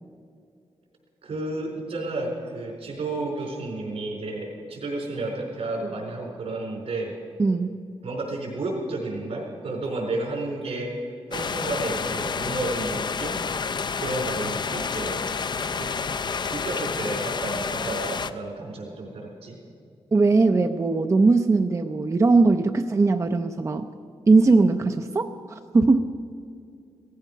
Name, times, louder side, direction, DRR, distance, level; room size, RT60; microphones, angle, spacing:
voice 1, 1.2-7.1 8.0-10.9 11.3-13.4 14.0-15.2 15.8-15.9 16.5-19.6, right 2 dB, 85° right, 0 dB, 4.5 m, -31 dB
voice 2, 7.4-7.8 20.1-23.9 24.3-26.1, right 3 dB, 30° right, 7 dB, 0.5 m, -20 dB
sound 1, 11.3-18.3, left 5 dB, 50° left, 0.5 m, -29 dB
17.0 x 15.0 x 5.6 m, 2.4 s
wide cardioid pair, 125°, 10 cm